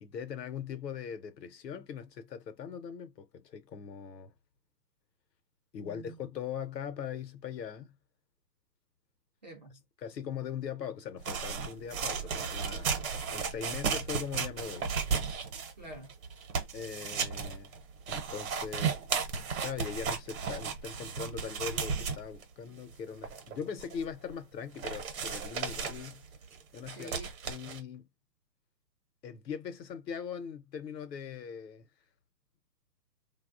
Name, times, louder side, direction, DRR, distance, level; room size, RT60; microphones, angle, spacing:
voice 1, 0.0-4.3 5.7-8.0 10.0-14.9 16.7-17.7 18.1-19.1 19.6-26.2 26.7-27.2 27.4-28.1 29.2-31.9, left 7 dB, 75° left, 0.8 m, -41 dB
voice 2, 5.8-6.2 9.4-9.8 15.8-16.1 27.0-27.3, right 2 dB, 30° right, 0.4 m, -47 dB
sound 1, 11.2-22.4 22.9-23.0 23.2-24.1 24.3-24.4 24.8-27.8, right 6 dB, 55° right, 0.9 m, -34 dB
2.9 x 2.3 x 2.4 m
hypercardioid pair, 155°, 50 cm